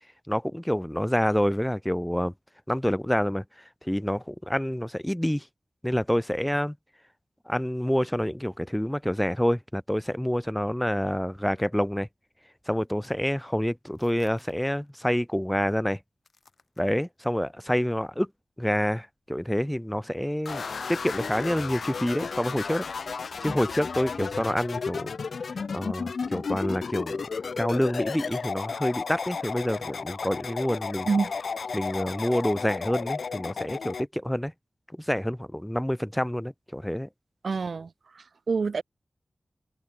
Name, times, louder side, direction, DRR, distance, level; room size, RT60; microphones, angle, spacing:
voice 1, 0.3-2.3 2.7-3.4 3.8-5.5 5.8-6.8 7.5-12.1 12.7-16.0 16.8-18.3 18.6-20.6 20.9-22.8 23.4-25.1 25.7-27.3 27.6-31.1 31.7-34.5 35.0-37.1, equal, 5° left, 0.5 m, -27 dB
sound 1, 12.2-20.8, left 4 dB, 70° left, 5.9 m, -67 dB
sound 2, 20.5-34.1, left 5 dB, 85° left, 0.5 m, -33 dB
voice 2, 37.4-37.9 38.2-38.8, right 4 dB, 80° right, 0.5 m, -27 dB
cardioid pair, 45°, 0 cm